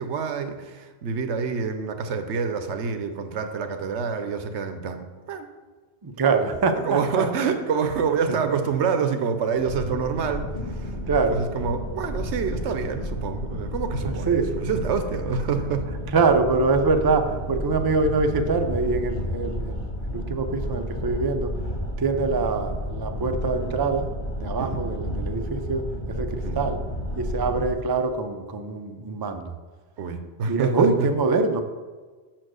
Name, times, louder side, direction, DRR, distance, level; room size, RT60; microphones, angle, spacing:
voice 1, 0.0-5.5 6.8-11.0 11.3-15.9 24.6-24.8 26.4-26.6 30.0-31.1, right 5 dB, 80° right, 8 dB, 1.0 m, -27 dB
voice 2, 6.0-7.3 8.3-8.4 11.1-11.4 14.0-14.5 16.1-21.5 22.0-24.1 24.4-26.8 27.2-29.5 30.5-31.6, right 4 dB, 40° right, 6 dB, 0.3 m, -24 dB
sound 1, 9.6-27.7, equal, 60° left, 1.7 m, -31 dB
6.0 x 4.5 x 6.2 m, 1.4 s
omnidirectional pair, 1.2 m